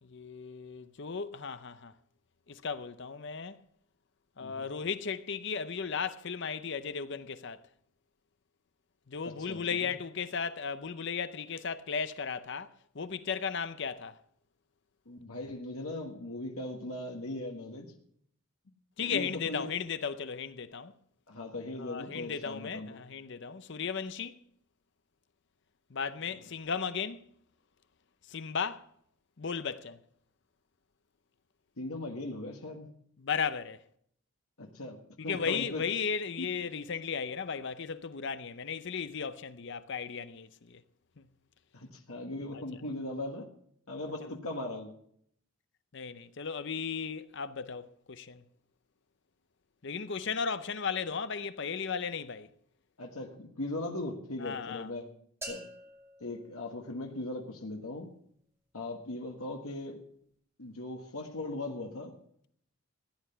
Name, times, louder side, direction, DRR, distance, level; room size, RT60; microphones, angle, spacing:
voice 1, 0.0-1.9 2.5-3.6 4.4-7.7 9.1-14.2 19.0-20.9 21.8-24.4 25.9-27.2 28.3-28.9 29.4-30.0 33.2-33.8 35.3-40.8 41.2-41.3 44.3-44.4 45.9-48.4 49.8-52.5 54.4-54.9, left 6 dB, 55° left, 0.6 m, -35 dB
voice 2, 4.4-4.7 9.2-9.9 15.0-17.9 19.0-19.7 21.3-23.0 31.8-32.9 34.6-35.9 36.4-36.5 41.7-43.5 43.9-44.9 53.0-55.0 55.5-55.7 56.2-58.1 58.7-60.0 60.6-62.2, left 2 dB, 75° left, 1.5 m, -39 dB
sound 1, 55.4-57.4, right 1 dB, 10° right, 2.5 m, -47 dB
16.0 x 10.0 x 5.6 m
head